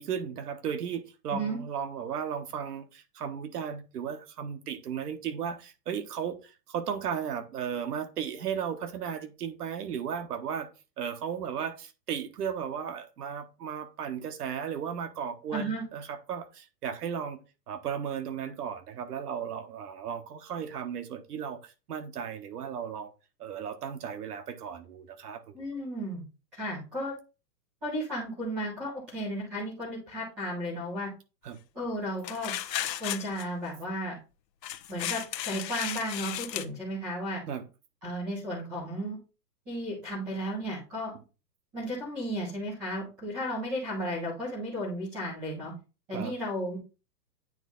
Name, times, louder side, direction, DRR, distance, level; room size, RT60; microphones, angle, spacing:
voice 1, 0.0-10.7 11.0-17.4 17.7-23.1 23.4-25.5 31.4-31.6 37.5-37.7 46.1-46.3, right 8 dB, 65° right, 1.3 m, -35 dB
voice 2, 15.5-15.8 25.5-26.2 26.5-27.1 27.8-31.1 31.7-32.5 33.0-34.2 34.9-37.4 38.0-39.2 39.7-41.1 41.7-45.7 46.1-46.8, equal, ahead, 0.4 m, -34 dB
sound 1, 32.2-33.5 34.6-36.7, left 12 dB, 75° left, 0.8 m, -34 dB
9.2 x 3.3 x 3.9 m
hypercardioid pair, 155°, 50 cm